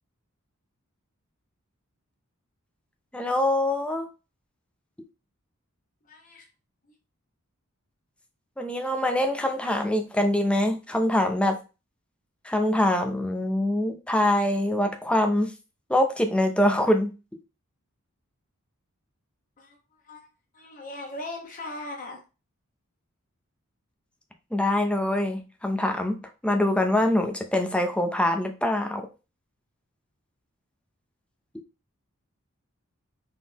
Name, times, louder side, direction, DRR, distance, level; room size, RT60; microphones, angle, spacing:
voice 1, 3.1-4.1 8.6-11.6 12.4-15.5 15.9-17.1 24.5-29.1, left 1 dB, 5° left, 5 dB, 0.6 m, -24 dB
voice 2, 6.1-6.5 19.6-19.8 20.0-20.3 20.5-22.2, left 2 dB, 40° left, 1 dB, 1.3 m, -38 dB
4.1 x 3.8 x 2.9 m, 0.30 s
head